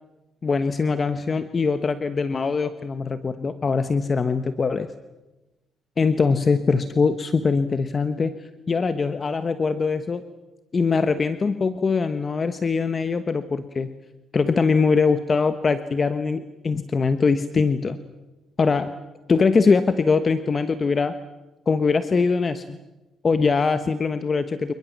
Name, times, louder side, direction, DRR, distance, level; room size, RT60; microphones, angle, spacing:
voice 1, 0.4-4.9 6.0-8.4 8.7-10.2 10.7-13.9 14.3-18.0 18.6-18.9 19.3-21.1 21.7-22.8 23.2-24.5, left 4 dB, 35° left, 10 dB, 1.2 m, -22 dB
27.5 x 20.5 x 7.4 m, 1.0 s
cardioid pair, 90°, 0 cm